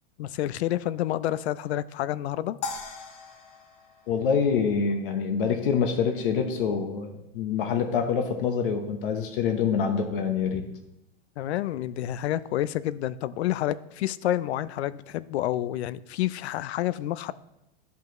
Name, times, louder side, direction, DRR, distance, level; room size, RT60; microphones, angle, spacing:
voice 1, 0.2-2.6 11.4-17.3, left 13 dB, 85° left, 17 dB, 0.5 m, -29 dB
sound 1, 2.6-5.0, left 4 dB, 20° left, 0.5 m, -39 dB
voice 2, 4.1-10.7, left 6 dB, 55° left, 6 dB, 1.0 m, -26 dB
12.5 x 5.5 x 3.0 m, 0.88 s
supercardioid pair, 165°, 32 cm